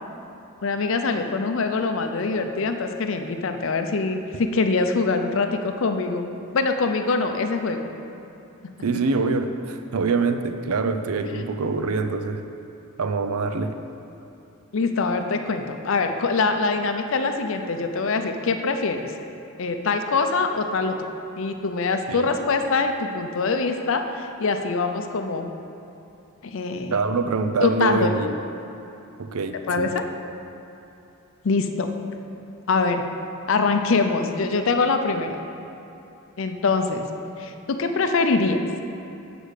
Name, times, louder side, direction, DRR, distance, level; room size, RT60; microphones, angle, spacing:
voice 1, 0.6-6.3 6.5-7.9 14.7-19.1 19.6-21.0 21.4-25.5 26.5-27.0 27.6-28.1 29.7-30.0 31.4-31.9 32.7-33.0 33.5-35.4 36.4-37.1 37.4-38.6, left 4 dB, 60° left, 6 dB, 0.5 m, -24 dB
voice 2, 8.8-12.4 13.0-13.7 22.1-22.3 26.9-28.3 29.2-29.9, right 4 dB, 80° right, 7 dB, 0.5 m, -25 dB
8.2 x 4.9 x 6.5 m, 2.8 s
head